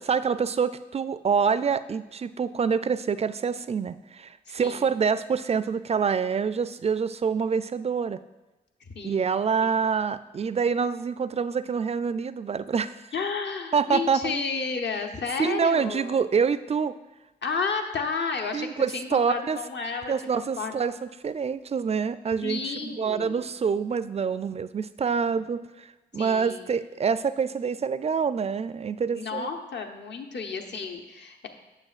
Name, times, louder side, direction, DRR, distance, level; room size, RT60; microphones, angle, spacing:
voice 1, 0.0-8.2 9.0-13.0 13.7-14.4 15.4-16.9 18.5-19.6 20.1-20.9 21.2-25.9 26.1-29.5, right 6 dB, 30° right, 14 dB, 0.4 m, -26 dB
voice 2, 8.9-9.3 9.6-9.7 13.1-16.2 17.4-20.1 20.6-20.7 22.4-23.4 26.1-26.7 29.1-31.5, left 5 dB, 60° left, 4 dB, 0.9 m, -32 dB
8.9 x 7.0 x 2.4 m, 1.1 s
supercardioid pair, 40°, 20 cm